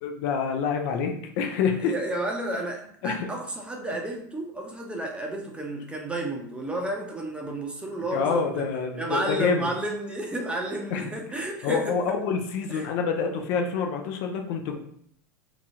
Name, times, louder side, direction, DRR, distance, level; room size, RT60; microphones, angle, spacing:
voice 1, 0.0-1.9 3.0-3.3 8.1-9.7 10.9-11.1 11.6-14.8, left 6 dB, 60° left, 4 dB, 0.5 m, -27 dB
voice 2, 1.8-8.7 8.9-12.0 12.7-12.9, right 1 dB, 10° right, 1 dB, 0.6 m, -32 dB
2.9 x 2.3 x 2.7 m, 0.67 s
hypercardioid pair, 100°, 10 cm